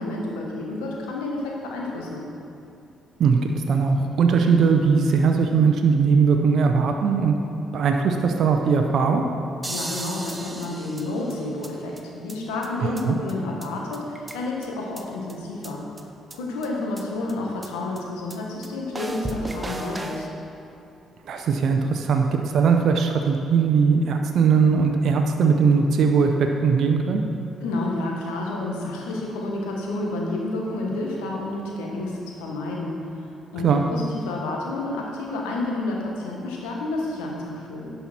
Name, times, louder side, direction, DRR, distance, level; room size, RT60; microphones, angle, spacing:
voice 1, 0.0-2.3 9.7-15.8 16.3-20.3 27.6-33.3 33.5-37.9, left 2 dB, 85° left, -1 dB, 1.3 m, -30 dB
voice 2, 3.2-7.4 7.7-9.2 12.8-13.2 21.2-27.2 33.6-33.8, right 5 dB, 65° right, 4 dB, 0.6 m, -20 dB
sound 1, 9.6-11.7 12.0-12.1 12.3-12.4 12.6-12.7 13.0-13.1 13.3-13.4 13.6-13.7 13.9-14.7 15.0-15.1 15.3-15.4 15.6-15.7 16.0-16.1 16.3-16.4 16.6-16.7 17.0-17.1 17.3-17.4 17.6-17.7 18.0-18.1 18.3-18.4 18.6-18.7 18.9-20.3, right 1 dB, 20° right, 0.8 m, -34 dB
11.0 x 5.6 x 4.4 m, 2.7 s
hypercardioid pair, 50°, 0 cm